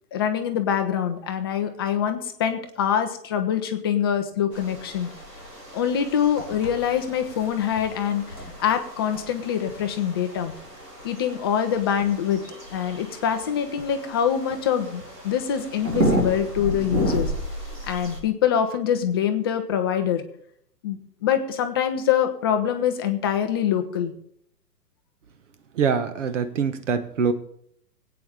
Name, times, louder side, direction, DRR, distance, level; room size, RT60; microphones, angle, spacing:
voice 1, 0.1-5.1 5.7-8.2 8.6-10.5 11.0-12.4 12.7-17.3 17.9-20.2 20.8-24.1, left 9 dB, 15° left, 6 dB, 0.6 m, -24 dB
sound 1, 4.5-18.2, equal, 75° right, 3.7 m, -32 dB
voice 2, 25.7-27.3, right 6 dB, 50° right, 10 dB, 1.2 m, -24 dB
21.0 x 8.7 x 3.4 m, 0.69 s
figure-of-eight pair, 120°, 48 cm